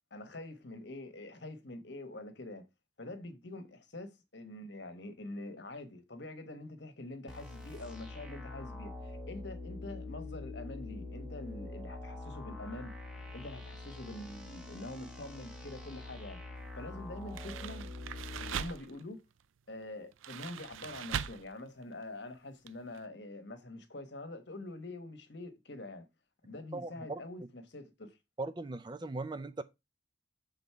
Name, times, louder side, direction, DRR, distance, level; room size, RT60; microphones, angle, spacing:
voice 1, 0.1-2.7 3.0-13.0 13.3-16.4 16.7-17.9 18.4-19.2 19.7-26.1 26.4-28.2, left 2 dB, 60° left, 1.2 m, -45 dB
sound 1, 7.3-18.6, left 2 dB, 5° right, 1.2 m, -45 dB
sound 2, 17.2-19.0 20.1-21.5 21.8-22.0 22.7-22.8 22.9-23.0, right 8 dB, 85° right, 0.4 m, -40 dB
voice 2, 26.7-27.2 28.4-29.6, right 2 dB, 25° right, 0.4 m, -39 dB
7.1 x 3.9 x 4.5 m
head